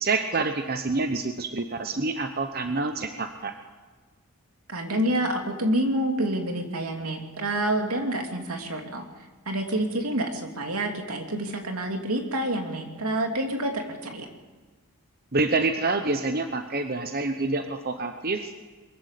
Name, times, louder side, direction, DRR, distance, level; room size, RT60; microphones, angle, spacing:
voice 1, 0.0-3.5 15.3-18.7, right 3 dB, 45° right, 7 dB, 1.0 m, -27 dB
voice 2, 4.7-9.0 9.5-14.3, right 1 dB, 80° right, 3 dB, 2.8 m, -28 dB
22.5 x 14.0 x 8.3 m, 1.4 s
head